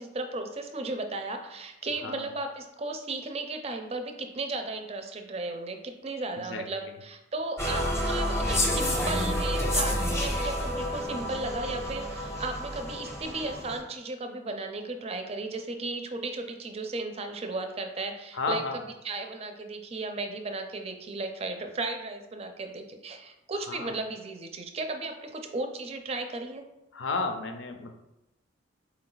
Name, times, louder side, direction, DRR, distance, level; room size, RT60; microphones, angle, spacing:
voice 1, 0.0-26.6, right 2 dB, 35° right, 5 dB, 0.4 m, -35 dB
voice 2, 6.4-6.9 18.3-18.8 23.7-24.0 26.9-27.9, left 3 dB, 75° left, 5 dB, 0.5 m, -33 dB
sound 1, 7.6-13.8, equal, 15° left, 0.7 m, -29 dB
4.6 x 2.3 x 3.8 m, 0.92 s
head